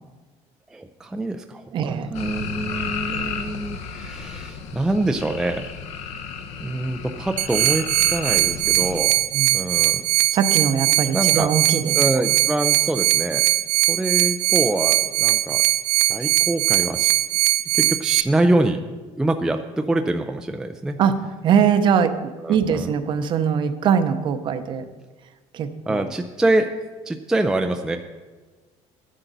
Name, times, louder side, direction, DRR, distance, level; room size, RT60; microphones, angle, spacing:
voice 1, 0.7-1.6 2.1-5.7 6.6-9.3 9.5-10.0 11.1-11.5 11.9-13.5 13.8-15.6 16.1-17.1 17.7-18.8 19.2-21.0 22.4-22.9 25.9-26.7 27.1-28.0, right 2 dB, 5° right, 5 dB, 0.3 m, -25 dB
voice 2, 1.7-2.1 9.3-9.6 10.3-11.9 21.0-24.9 25.5-26.1, right 7 dB, 40° right, 10 dB, 0.7 m, -22 dB
sound 1, 2.1-9.0, left 6 dB, 60° left, 0.9 m, -33 dB
sound 2, 7.4-18.2, right 18 dB, 90° right, 0.4 m, -20 dB
12.0 x 9.9 x 4.0 m, 1.3 s
cardioid pair, 165°, 12 cm